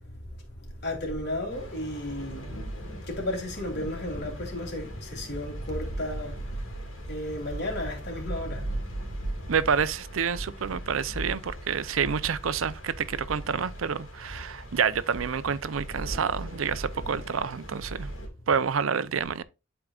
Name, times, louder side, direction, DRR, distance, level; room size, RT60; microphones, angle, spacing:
voice 1, 0.8-2.5 3.1-6.4 7.1-8.7, left 1 dB, 55° left, 3.0 m, -33 dB
sound 1, 1.5-18.3, right 1 dB, 85° left, 2.7 m, -38 dB
voice 2, 9.5-18.1 18.5-19.4, right 6 dB, 90° right, 0.5 m, -28 dB
11.5 x 4.6 x 2.4 m
head